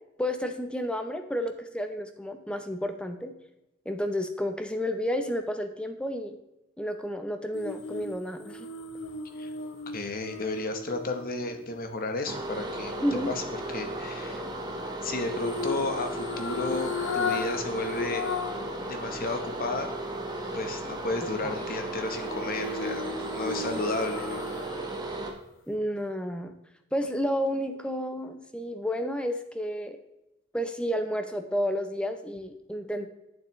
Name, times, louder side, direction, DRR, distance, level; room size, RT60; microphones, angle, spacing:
voice 1, 0.2-3.3 3.9-6.4 6.8-8.7 13.0-13.3 21.4-21.5 25.7-26.5 26.9-30.0 30.5-33.1, equal, 5° left, 7 dB, 0.6 m, -31 dB
sound 1, 7.5-11.8 15.3-18.7 19.1-19.2 22.0-24.9 25.3-25.4, left 4 dB, 65° left, 0.6 m, -35 dB
voice 2, 9.9-13.4 13.7-14.4 15.0-18.2 18.9-19.9 20.5-24.4, left 2 dB, 45° left, 6 dB, 1.0 m, -33 dB
sound 2, 12.3-25.3, right 1 dB, 20° right, 1.0 m, -35 dB
8.7 x 7.1 x 3.1 m, 0.93 s
head